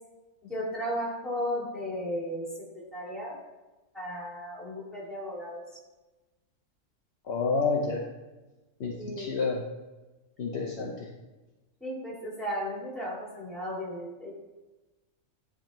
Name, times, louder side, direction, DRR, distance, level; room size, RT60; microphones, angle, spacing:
voice 1, 0.4-2.5 2.7-3.3 3.9-5.6 9.0-9.3 11.8-14.3, equal, ahead, -5 dB, 1.9 m, -35 dB
voice 2, 7.2-8.0 8.8-9.6 10.4-11.1, left 4 dB, 60° left, -1 dB, 0.9 m, -29 dB
10.0 x 3.7 x 3.0 m, 1.1 s
omnidirectional pair, 1.3 m